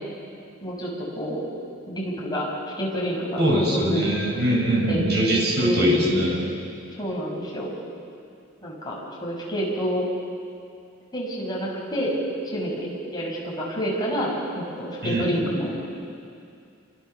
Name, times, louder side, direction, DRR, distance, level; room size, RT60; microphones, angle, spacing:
voice 1, 0.6-1.5 1.9-2.5 2.8-4.1 4.9-5.0 5.6-6.0 6.9-7.7 8.6-10.1 11.1-12.1 12.5-15.7, equal, 20° left, -4 dB, 6.3 m, -28 dB
voice 2, 3.4-6.4 15.0-15.3, equal, 55° right, -1 dB, 6.5 m, -22 dB
27.0 x 25.0 x 7.0 m, 2.5 s
head